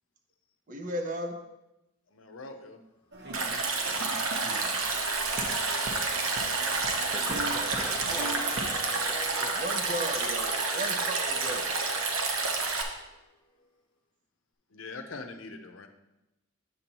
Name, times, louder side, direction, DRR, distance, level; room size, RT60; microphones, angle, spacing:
voice 1, 0.7-1.4 9.5-11.7, right 1 dB, 40° right, 4 dB, 0.8 m, -35 dB
voice 2, 2.1-2.8 14.7-15.9, left 3 dB, 70° left, 6 dB, 0.7 m, -42 dB
sound 1, 3.1-8.7, right 1 dB, 55° right, 1.1 m, -40 dB
Stream, 3.3-12.8, right 3 dB, 85° right, 0.9 m, -29 dB
sound 2, 4.0-13.7, left 1 dB, 25° left, 1.2 m, -48 dB
voice 3, 6.6-9.6, left 1 dB, 5° left, 3 dB, 0.6 m, -44 dB
8.3 x 6.8 x 2.9 m, 0.93 s
head